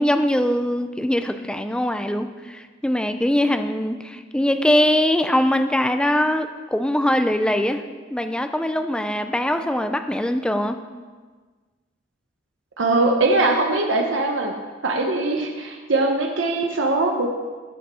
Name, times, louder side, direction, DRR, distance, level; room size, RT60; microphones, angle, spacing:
voice 1, 0.0-7.8 8.1-10.8, left 1 dB, 5° left, 8 dB, 0.4 m, -22 dB
voice 2, 12.8-14.5 14.8-17.3, right 2 dB, 85° right, 2 dB, 0.9 m, -21 dB
12.5 x 5.2 x 5.5 m, 1.4 s
head